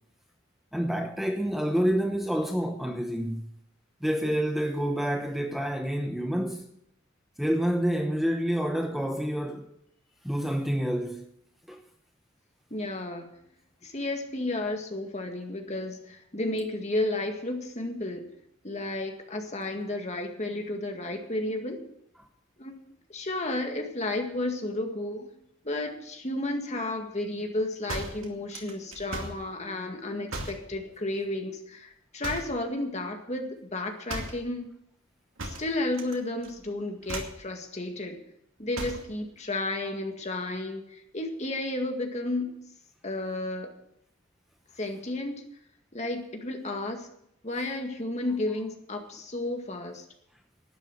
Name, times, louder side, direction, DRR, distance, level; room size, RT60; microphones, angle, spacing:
voice 1, 0.7-3.5 4.0-6.6 7.4-9.7 10.2-11.2 11.7-11.8, equal, ahead, 0.8 m, -28 dB
voice 2, 12.7-13.3 13.8-18.3 18.6-21.8 22.6-22.8 23.1-25.3 25.6-34.7 35.4-38.2 38.6-42.5 43.0-43.7 44.8-45.4 45.9-47.1 47.4-50.1, left 2 dB, 35° left, 2.0 m, -32 dB
sound 1, 27.9-29.5 30.3-30.7 32.2-32.6 34.1-34.5 35.4-36.2 36.4-36.7 37.0-37.4 38.7-39.1, right 2 dB, 90° right, 2.5 m, -37 dB
12.0 x 9.8 x 7.9 m
head